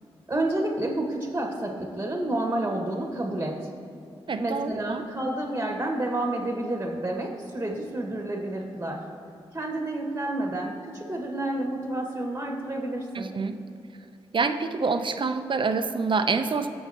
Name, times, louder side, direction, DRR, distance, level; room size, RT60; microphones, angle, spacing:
voice 1, 0.3-3.7 4.4-9.0 9.5-13.3, right 1 dB, 20° right, 1 dB, 1.8 m, -29 dB
voice 2, 4.3-5.0 13.1-13.6 14.3-16.7, right 4 dB, 50° right, 8 dB, 0.7 m, -26 dB
16.5 x 5.6 x 3.0 m, 2.6 s
supercardioid pair, 40°, 11 cm